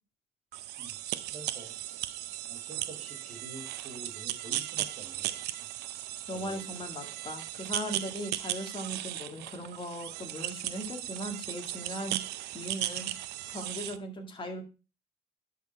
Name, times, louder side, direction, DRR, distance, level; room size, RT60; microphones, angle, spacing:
sound 1, 0.5-14.0, right 14 dB, 80° right, 0.6 m, -37 dB
voice 1, 1.3-1.8 2.5-5.4 6.3-6.6, right 2 dB, 40° right, 4 dB, 2.3 m, -47 dB
voice 2, 6.3-12.2 12.5-13.1 13.5-14.6, equal, 30° left, 3 dB, 1.9 m, -38 dB
10.5 x 4.3 x 4.6 m, 0.33 s
cardioid pair, 110°, 17 cm